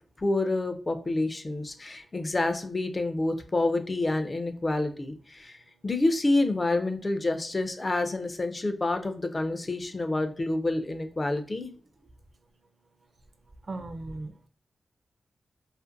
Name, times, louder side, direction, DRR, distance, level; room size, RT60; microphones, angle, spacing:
voice 1, 0.2-5.6 5.8-11.7, left 2 dB, 35° left, 8 dB, 0.4 m, -28 dB
voice 2, 13.7-14.5, right 2 dB, 45° right, 8 dB, 0.4 m, -37 dB
2.5 x 2.5 x 2.5 m, 0.41 s
cardioid pair, 60°, 0 cm